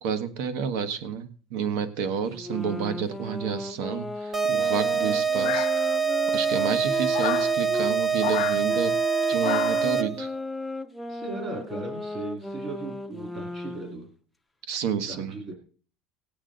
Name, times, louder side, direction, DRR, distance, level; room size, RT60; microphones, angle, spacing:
voice 1, 0.0-5.7 6.3-9.0 9.3-10.3 14.7-15.4, right 7 dB, 65° right, 11 dB, 1.3 m, -30 dB
sound 1, 2.3-8.0 8.7-14.0, left 2 dB, 5° left, 0.5 m, -35 dB
sound 2, 4.3-10.3, right 6 dB, 15° right, 0.9 m, -25 dB
sound 3, 5.4-6.2 7.1-7.5 8.2-8.6 9.4-9.9, left 19 dB, 75° left, 0.6 m, -31 dB
voice 2, 11.1-14.1 15.1-15.5, right 2 dB, 30° right, 1 dB, 2.4 m, -37 dB
18.0 x 8.5 x 3.9 m, 0.43 s
cardioid pair, 170°, 0 cm